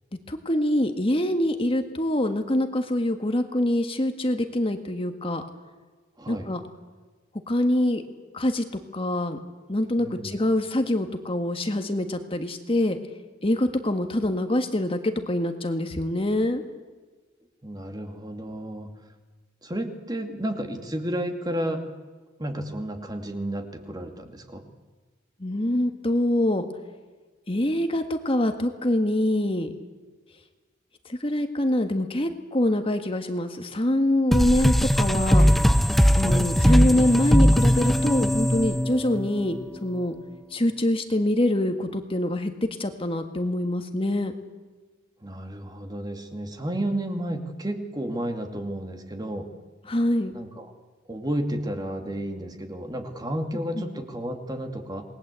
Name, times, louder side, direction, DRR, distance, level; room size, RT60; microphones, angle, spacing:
voice 1, 0.3-5.4 6.3-6.6 7.5-8.0 8.3-8.7 8.9-9.4 9.7-13.0 13.4-16.6 25.4-26.6 27.5-29.7 31.1-35.5 36.1-40.1 40.5-44.3 49.9-50.3 53.8-53.9, left 1 dB, 30° left, 6 dB, 1.7 m, -25 dB
voice 2, 6.2-6.5 10.0-10.3 17.6-18.9 19.6-21.8 22.4-24.6 36.2-36.5 45.2-49.5 50.3-50.7 51.1-55.0, right 1 dB, 20° right, 5 dB, 2.3 m, -32 dB
sound 1, 34.3-39.6, equal, ahead, 0.7 m, -20 dB
28.0 x 20.5 x 8.3 m, 1.3 s
head